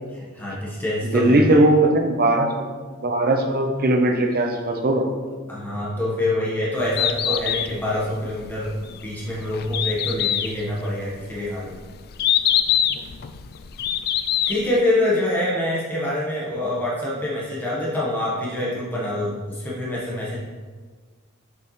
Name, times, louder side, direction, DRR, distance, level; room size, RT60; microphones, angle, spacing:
voice 1, 0.1-1.6 5.5-8.7 9.0-11.8 14.5-20.4, left 1 dB, 10° left, -7 dB, 1.3 m, -25 dB
voice 2, 1.0-2.7 3.0-5.1 7.3-7.4, right 2 dB, 45° right, 3 dB, 0.8 m, -19 dB
Bird, 6.8-14.8, left 10 dB, 45° left, 0.3 m, -25 dB
6.8 x 5.3 x 3.2 m, 1.5 s
head